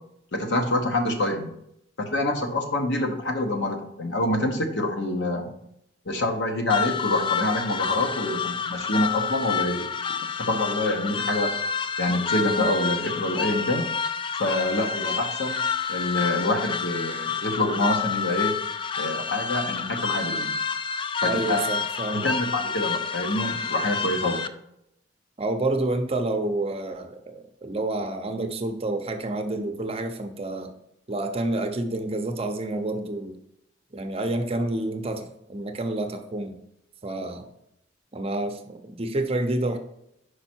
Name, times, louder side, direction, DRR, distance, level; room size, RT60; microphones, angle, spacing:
voice 1, 0.3-1.5 2.0-5.5 6.1-9.8 10.4-11.5 12.0-13.9 14.4-15.6 15.9-18.5 19.0-20.5 21.2-21.6 22.1-24.5, left 1 dB, 70° left, 4 dB, 1.0 m, -26 dB
sound 1, 6.7-24.5, left 6 dB, 25° left, 0.3 m, -29 dB
voice 2, 21.3-22.3 25.4-30.7 31.1-33.4 33.9-36.5 37.0-37.5 38.1-39.8, right 2 dB, 30° right, 5 dB, 0.6 m, -29 dB
5.4 x 4.9 x 4.4 m, 0.78 s
head